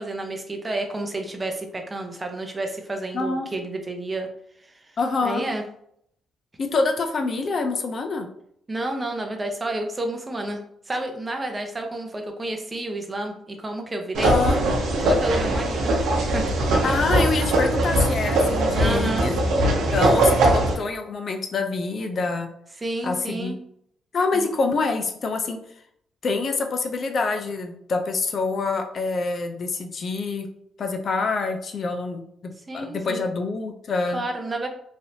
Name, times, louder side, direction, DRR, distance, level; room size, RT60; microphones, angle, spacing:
voice 1, 0.0-4.3 4.6-4.8 5.2-5.6 8.7-10.6 10.9-14.3 15.0-16.5 18.8-19.3 22.8-23.6 24.3-24.5 32.7-33.2 34.1-34.7, right 2 dB, 25° right, 4 dB, 0.6 m, -30 dB
voice 2, 3.1-3.5 5.0-5.4 6.6-8.3 14.2-14.6 16.8-19.4 19.9-22.5 23.0-23.5 24.1-25.6 26.2-30.5 30.8-32.2 32.7-34.2, left 3 dB, 50° left, 5 dB, 0.4 m, -26 dB
sound 1, 14.1-20.7, right 1 dB, 80° right, 0.8 m, -21 dB
3.2 x 2.7 x 2.7 m, 0.70 s
cardioid pair, 90°, 0 cm